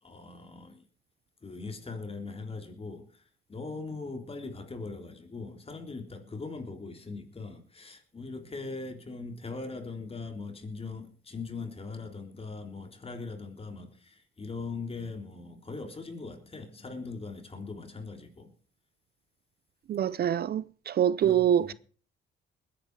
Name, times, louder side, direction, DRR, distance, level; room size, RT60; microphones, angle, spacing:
voice 1, 0.0-0.8 1.4-3.2 3.5-18.5 21.2-21.7, left 3 dB, 30° left, 3.5 m, -40 dB
voice 2, 19.9-21.7, right 10 dB, 55° right, 0.6 m, -25 dB
20.5 x 10.5 x 4.7 m
cardioid pair, 90°, 20 cm